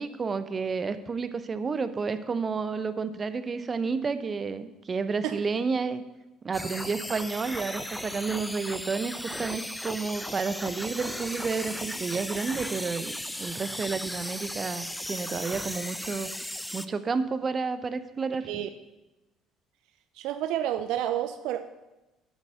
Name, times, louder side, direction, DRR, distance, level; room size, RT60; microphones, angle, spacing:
voice 1, 0.0-6.0 6.4-16.3 16.7-18.6, right 4 dB, 35° right, 12 dB, 0.8 m, -31 dB
sound 1, 6.5-16.9, left 1 dB, 5° left, 0.8 m, -36 dB
voice 2, 20.2-21.7, right 11 dB, 65° right, 9 dB, 0.5 m, -30 dB
8.3 x 8.1 x 6.7 m, 1.0 s
hypercardioid pair, 55°, 0 cm